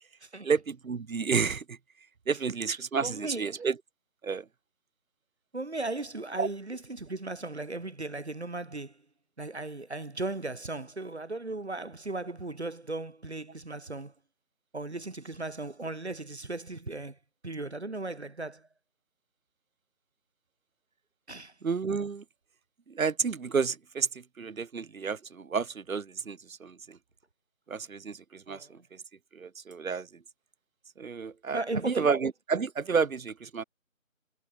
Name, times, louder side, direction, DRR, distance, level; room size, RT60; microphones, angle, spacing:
voice 1, 0.4-1.8 2.3-3.8 4.2-4.5 6.4-6.5 21.6-22.2 22.9-27.0 27.7-29.0 29.3-30.2 31.0-33.6, right 5 dB, 75° right, 0.8 m, -31 dB
voice 2, 3.0-3.5 5.5-9.0 9.4-14.1 14.7-17.2 17.4-18.7 21.3-21.5 28.5-28.8 31.5-32.1, right 2 dB, 50° right, 1.4 m, -36 dB
figure-of-eight pair, 165°, 41 cm